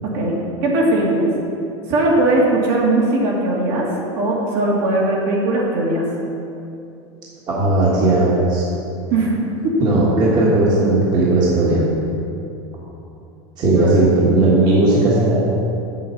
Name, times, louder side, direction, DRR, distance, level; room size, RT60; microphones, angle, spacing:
voice 1, 0.1-1.3 1.9-3.9 4.1-6.0 9.1-9.3 9.6-9.8 13.7-14.0, right 2 dB, 55° right, -3 dB, 2.4 m, -19 dB
voice 2, 7.5-8.7 9.8-11.8 13.6-15.4, right 2 dB, 30° right, -5 dB, 1.6 m, -16 dB
8.2 x 7.4 x 5.7 m, 2.7 s
supercardioid pair, 155°, 14 cm